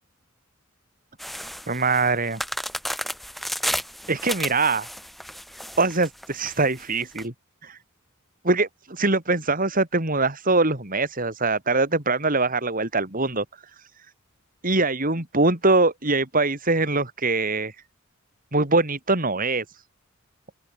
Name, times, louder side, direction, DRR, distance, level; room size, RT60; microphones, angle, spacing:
sound 1, 1.2-7.2, equal, ahead, 3.1 m, -32 dB
voice 1, 1.7-2.4 4.1-4.9 5.8-7.3 7.6-7.8 8.4-13.4 13.8-13.9 14.6-17.7 18.5-19.8, right 3 dB, 40° right, 4.6 m, -23 dB
open air
head